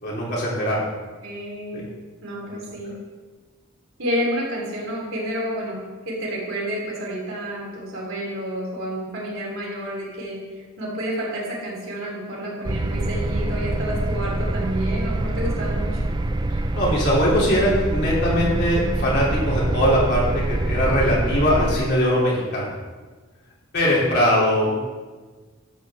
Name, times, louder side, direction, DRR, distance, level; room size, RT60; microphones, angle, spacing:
voice 1, 0.0-0.8 1.7-1.8 16.7-22.7 23.7-24.8, equal, 50° left, -5 dB, 3.1 m, -21 dB
voice 2, 1.2-1.8 2.2-2.9 4.0-5.8 6.1-10.4 10.8-16.0, equal, 60° right, -4 dB, 3.5 m, -30 dB
sound 1, 12.6-21.8, right 2 dB, 20° right, 0.3 m, -25 dB
13.0 x 8.4 x 3.6 m, 1.4 s
head